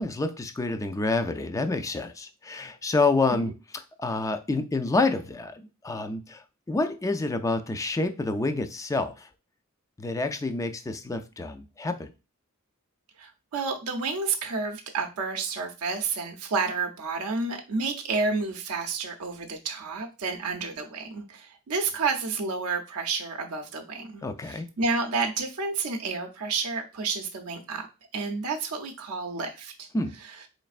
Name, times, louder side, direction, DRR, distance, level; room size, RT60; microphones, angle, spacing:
voice 1, 0.0-9.3 10.0-12.1 24.2-24.7 29.9-30.1, left 3 dB, 15° left, 0.3 m, -28 dB
voice 2, 13.2-27.9 28.1-29.9, right 4 dB, 75° right, 0.6 m, -30 dB
4.1 x 3.2 x 2.4 m
head